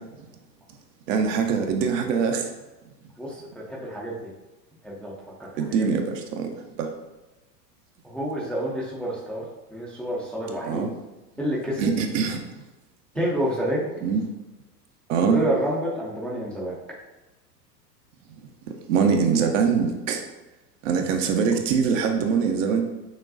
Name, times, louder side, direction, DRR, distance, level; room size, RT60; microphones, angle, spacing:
voice 1, 1.1-2.5 5.6-6.5 6.8-6.9 10.6-10.9 11.8-12.5 14.0-14.2 15.1-15.4 18.7-20.2 20.8-22.8, right 6 dB, 50° right, 4 dB, 0.7 m, -23 dB
voice 2, 3.2-4.2 4.8-5.1 5.5-5.6 8.0-9.4 9.7-10.8 11.4-11.9 13.1-13.9 15.2-16.7, right 1 dB, ahead, -5 dB, 0.5 m, -28 dB
6.0 x 2.3 x 2.6 m, 1.1 s
figure-of-eight pair, 90°, 50 cm